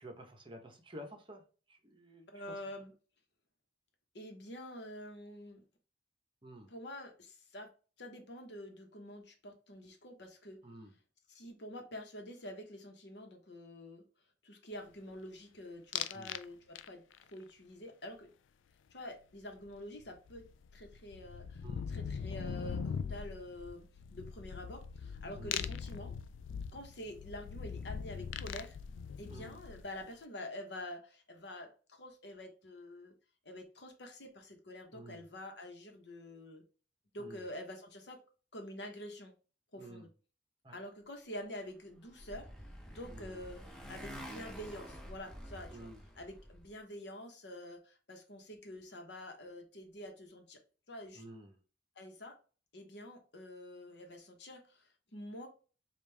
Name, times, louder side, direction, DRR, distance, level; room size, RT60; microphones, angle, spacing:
voice 1, 0.0-2.3 6.4-6.7 10.6-10.9 16.1-16.4 21.6-21.9 25.4-25.6 29.3-29.6 34.9-35.2 37.2-37.4 39.8-40.1 40.6-40.8 43.1-43.4 45.7-46.0 51.1-51.5, right 1 dB, 25° right, 4 dB, 0.8 m, -51 dB
voice 2, 2.3-2.9 4.1-5.6 6.7-7.7 8.0-10.6 11.3-14.0 14.4-17.0 17.3-18.3 18.9-20.4 20.7-21.6 21.9-26.1 26.7-28.8 29.2-33.1 33.4-36.6 37.1-38.2 38.5-39.3 39.7-40.1 40.7-42.5 42.9-45.9 46.2-50.6 50.9-51.2 52.0-52.4 52.7-55.5, left 1 dB, 60° left, 4 dB, 1.0 m, -47 dB
sound 1, 15.9-16.4 16.8-17.2 19.7-19.8 20.0-30.1, left 7 dB, 90° left, 0.3 m, -41 dB
Motorcycle, 41.7-46.7, equal, 5° left, 0.7 m, -49 dB
5.1 x 2.4 x 3.3 m, 0.36 s
head